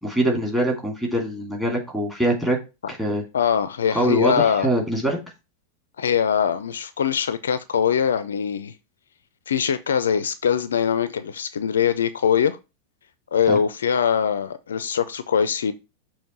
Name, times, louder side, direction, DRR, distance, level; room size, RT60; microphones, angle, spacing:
voice 1, 0.0-2.6 2.9-3.2 3.9-5.2 13.5-13.6, right 1 dB, 5° right, 2.8 m, -23 dB
voice 2, 3.3-4.7 6.0-8.7 9.5-12.6 13.3-15.7, left 7 dB, 65° left, 0.4 m, -22 dB
6.4 x 3.0 x 5.4 m
figure-of-eight pair, 90°, 0 cm